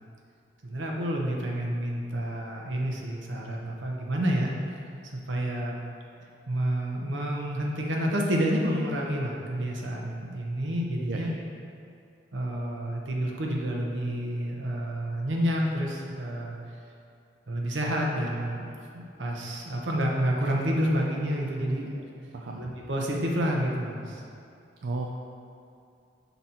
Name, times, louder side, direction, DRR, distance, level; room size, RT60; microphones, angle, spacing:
voice 1, 0.6-4.5 5.0-5.8 6.5-11.3 12.3-16.6 17.5-18.6 18.9-21.9 22.5-24.2, equal, 80° right, -1 dB, 0.9 m, -29 dB
voice 2, 24.8-25.2, right 2 dB, 65° right, -1 dB, 0.4 m, -34 dB
6.0 x 4.0 x 4.2 m, 2.6 s
head